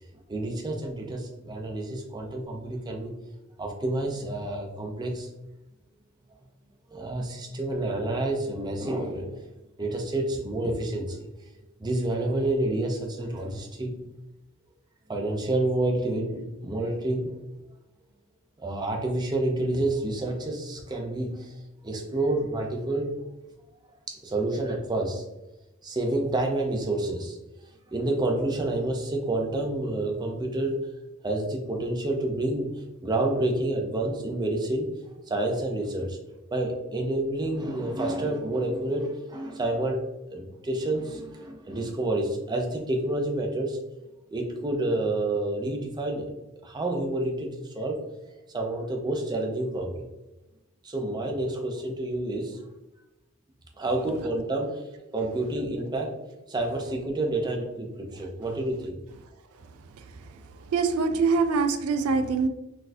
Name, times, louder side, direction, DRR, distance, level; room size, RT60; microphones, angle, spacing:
voice 1, 0.3-3.1 3.6-5.3 6.9-9.3 9.8-11.3 11.8-14.0 15.1-17.4 18.6-21.6 21.8-23.2 24.1-25.2 25.8-27.4 27.9-30.8 31.2-34.9 35.3-36.2 36.5-43.8 44.3-46.3 46.6-48.0 48.5-50.1 50.8-52.6 53.8-54.9 55.1-56.1 56.5-59.0, right 2 dB, 20° right, 2 dB, 0.5 m, -29 dB
voice 2, 60.7-62.5, right 4 dB, 90° right, 9 dB, 0.3 m, -23 dB
4.0 x 2.4 x 2.6 m, 0.99 s
head